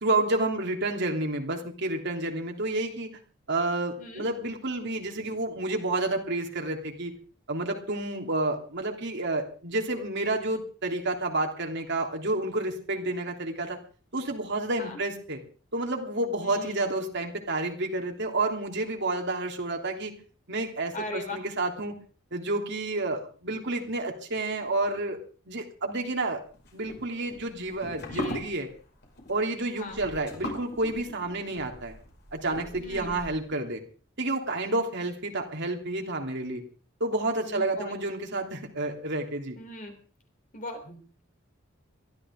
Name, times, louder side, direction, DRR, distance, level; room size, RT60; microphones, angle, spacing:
voice 1, 0.0-3.1 3.5-7.1 7.5-13.8 14.1-15.4 15.7-20.1 20.5-21.9 22.3-25.2 25.5-26.4 26.7-28.7 29.3-31.9 32.3-33.8 34.2-36.6 37.0-39.6, right 2 dB, 60° right, 2 dB, 3.2 m, -30 dB
voice 2, 16.4-16.9 20.9-21.4 28.1-28.4 29.8-30.0 32.8-33.2 37.4-38.0 39.6-40.0 40.5-41.3, left 2 dB, 40° left, 4 dB, 3.9 m, -39 dB
sound 1, 26.5-33.6, left 1 dB, 55° left, 5.9 m, -40 dB
22.5 x 15.0 x 3.8 m, 0.38 s
head